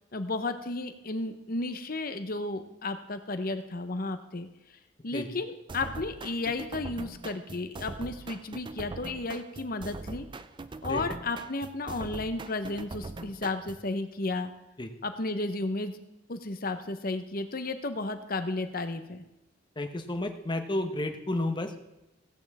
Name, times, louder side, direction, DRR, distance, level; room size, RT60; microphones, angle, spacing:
voice 1, 0.1-4.5 5.0-10.3 10.8-14.5 15.0-16.0 16.3-19.2, left 2 dB, 50° left, 8 dB, 0.9 m, -33 dB
sound 1, 5.7-13.9, right 3 dB, 25° right, 0.4 m, -42 dB
voice 2, 19.8-21.7, left 1 dB, 25° left, 6 dB, 0.9 m, -31 dB
16.0 x 8.8 x 3.6 m, 0.94 s
head